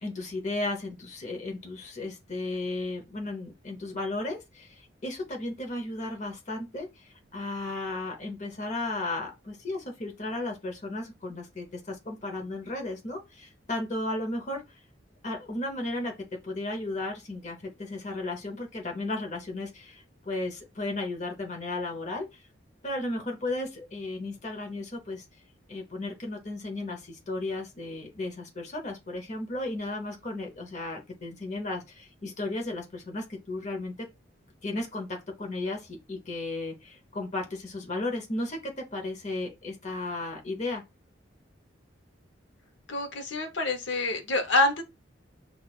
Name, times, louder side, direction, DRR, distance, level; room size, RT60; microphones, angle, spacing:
voice 1, 0.0-14.6 15.2-16.1 16.4-22.5 22.8-25.3 25.7-34.1 34.6-40.8, left 2 dB, 35° left, 0.8 m, -34 dB
voice 2, 42.9-44.8, left 2 dB, 65° left, 0.8 m, -26 dB
5.8 x 2.3 x 2.4 m
head